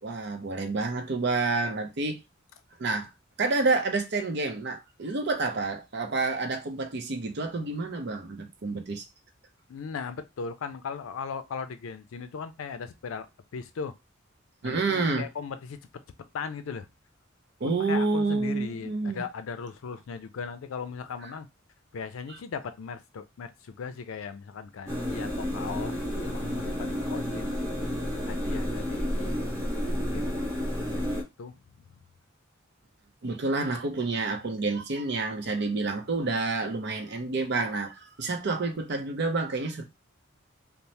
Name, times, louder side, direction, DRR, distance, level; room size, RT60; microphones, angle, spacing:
voice 1, 0.0-2.2 2.8-3.1 3.4-9.0 14.6-15.3 17.6-19.2 21.2-21.3 22.3-22.4 33.2-39.8, right 3 dB, 55° right, 0.6 m, -29 dB
voice 2, 9.7-13.3 13.5-13.9 14.6-15.8 16.3-16.9 17.6-21.5 21.9-27.5 28.2-29.7 30.1-30.4 30.9-31.5, left 5 dB, 90° left, 0.4 m, -38 dB
sound 1, 24.9-31.2, equal, 15° right, 0.9 m, -31 dB
2.7 x 2.0 x 3.1 m
head